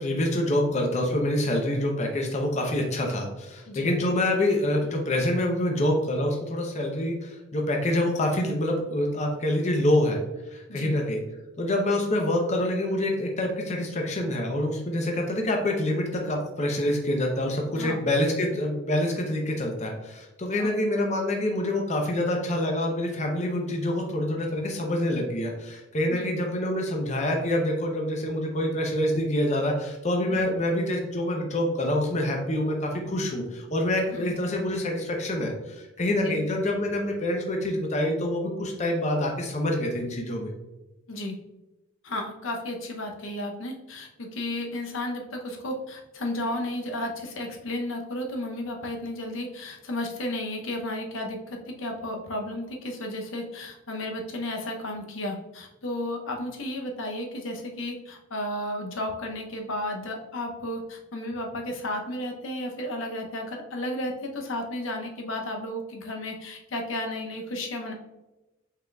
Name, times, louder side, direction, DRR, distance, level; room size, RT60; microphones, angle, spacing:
voice 1, 0.0-10.2 10.5-11.2 11.6-40.5, left 1 dB, 35° left, 1 dB, 0.7 m, -26 dB
voice 2, 42.0-67.9, left 1 dB, 70° left, 2 dB, 0.7 m, -33 dB
5.6 x 3.9 x 2.3 m, 1.0 s
head